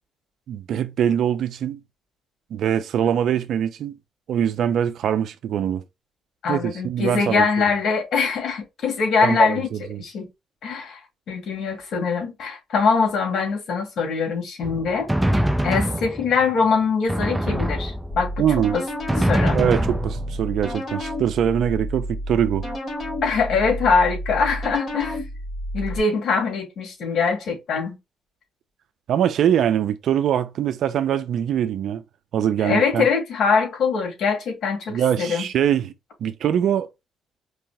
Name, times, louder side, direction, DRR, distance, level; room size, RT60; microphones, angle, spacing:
voice 1, 0.5-1.8 2.5-4.0 4.3-5.8 6.5-7.5 9.2-10.0 18.4-18.8 19.5-22.7 29.1-32.0 32.3-33.1 34.9-35.9 36.2-36.9, right 9 dB, 70° right, 0.6 m, -23 dB
voice 2, 6.4-9.7 10.0-10.3 10.6-11.0 11.3-15.1 15.6-18.4 18.7-18.8 19.2-19.6 23.2-25.2 25.7-28.0 32.6-35.5, left 5 dB, 65° left, 2.5 m, -22 dB
Drum, 14.6-16.5 17.1-18.4 19.1-20.6, right 1 dB, 5° right, 0.8 m, -24 dB
sound 1, 18.1-26.0, equal, 45° left, 3.2 m, -31 dB
4.8 x 3.4 x 3.0 m
cardioid pair, 90°, 0 cm